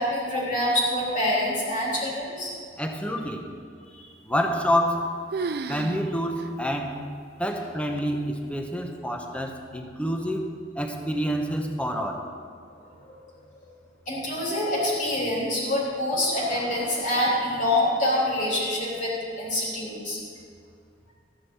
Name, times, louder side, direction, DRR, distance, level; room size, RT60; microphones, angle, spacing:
voice 1, 0.0-2.5 4.0-4.1 12.8-12.9 14.1-19.1 19.4-20.2, left 1 dB, 45° left, -5 dB, 3.4 m, -26 dB
voice 2, 2.8-3.4 4.3-5.1 5.7-7.0 7.4-10.5 10.7-12.2, equal, 5° left, 3 dB, 1.0 m, -27 dB
sound 1, 4.6-5.0 5.3-6.0 6.4-6.5 7.1-7.2 8.0-8.4, right 4 dB, 60° right, 0.4 m, -32 dB
13.5 x 9.5 x 4.7 m, 2.3 s
head